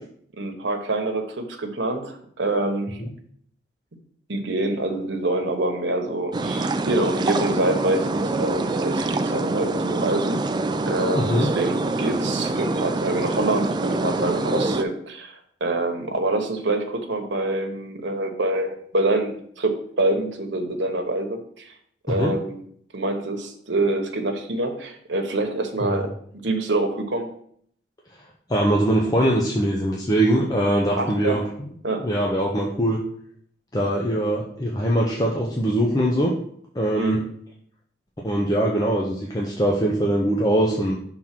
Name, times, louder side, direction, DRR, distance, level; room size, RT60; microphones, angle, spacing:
voice 1, 0.3-3.0 4.3-10.4 10.9-15.3 15.6-21.7 22.1-22.6 22.9-26.1 26.4-27.3 31.0-31.4 31.8-32.0 36.9-37.3, right 2 dB, 75° right, 4 dB, 1.1 m, -26 dB
sound 1, 6.3-14.8, right 2 dB, 25° right, 0.3 m, -25 dB
voice 2, 11.1-11.5 22.1-22.3 25.8-26.0 28.5-31.4 32.0-33.0 33.7-36.3 36.7-37.2 38.2-41.0, right 1 dB, 20° left, -2 dB, 0.7 m, -22 dB
5.9 x 3.7 x 5.9 m, 0.64 s
head